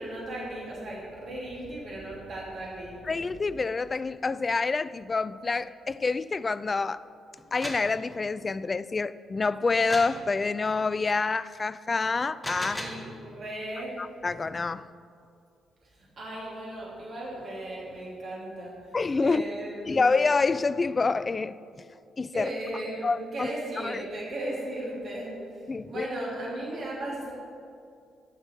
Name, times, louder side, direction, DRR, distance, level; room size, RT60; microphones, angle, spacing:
voice 1, 0.0-3.2 12.8-13.9 15.8-19.0 19.2-20.1 22.3-27.3, right 1 dB, 50° right, 2.8 m, -36 dB
voice 2, 3.1-7.0 7.5-12.8 14.0-14.9 18.9-19.4 19.9-21.5 22.2-22.5 23.0-23.5 23.8-24.0 25.7-26.1, left 4 dB, 30° left, 0.3 m, -27 dB
sound 1, 7.4-7.9 9.9-10.2 12.2-13.1, left 1 dB, 10° left, 1.5 m, -36 dB
13.5 x 6.3 x 4.6 m
figure-of-eight pair, 40°, 0 cm